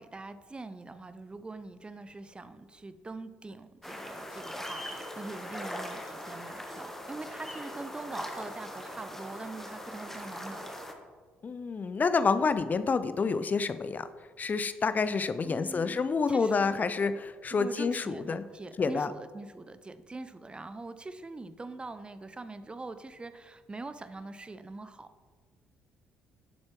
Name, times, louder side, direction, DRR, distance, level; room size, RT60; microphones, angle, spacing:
voice 1, 0.0-10.8 15.1-16.8 17.5-25.1, right 3 dB, 20° right, 12 dB, 0.5 m, -43 dB
sound 1, 3.8-10.9, equal, 5° left, 1.3 m, -41 dB
voice 2, 11.4-14.1 14.4-18.4 18.8-19.1, left 4 dB, 30° left, 12 dB, 0.5 m, -28 dB
10.0 x 7.3 x 3.1 m, 1.5 s
figure-of-eight pair, 50°, 6 cm